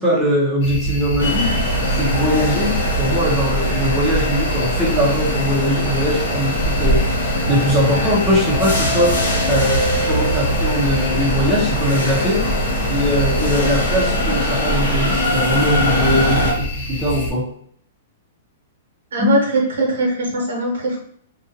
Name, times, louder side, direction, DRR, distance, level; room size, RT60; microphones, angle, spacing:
voice 1, 0.0-1.5 2.0-7.0 7.5-9.2 9.5-12.4 12.9-17.4 19.2-19.4, equal, 10° right, -6 dB, 0.7 m, -21 dB
sound 1, 0.6-17.3, equal, 50° left, 1.1 m, -26 dB
sound 2, 1.2-16.5, equal, 90° left, 0.9 m, -21 dB
voice 2, 19.1-21.0, right 2 dB, 90° right, 0 dB, 0.9 m, -20 dB
2.5 x 2.3 x 2.6 m, 0.64 s
hypercardioid pair, 160°, 0 cm